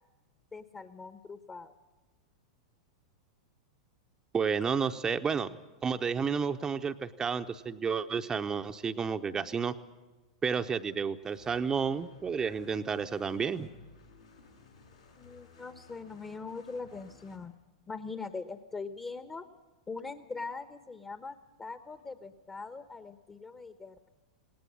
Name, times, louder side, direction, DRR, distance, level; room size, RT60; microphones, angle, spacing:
voice 1, 0.5-1.7 15.2-17.5 17.9-19.5 19.9-24.1, left 4 dB, 20° left, 10 dB, 1.1 m, -42 dB
voice 2, 4.3-5.5 5.8-9.7 10.4-13.7, right 6 dB, 20° right, 8 dB, 0.8 m, -31 dB
sound 1, 11.2-17.4, left 3 dB, 90° left, 7.1 m, -57 dB
19.5 x 18.0 x 9.5 m, 1.2 s
figure-of-eight pair, 95°, 3 cm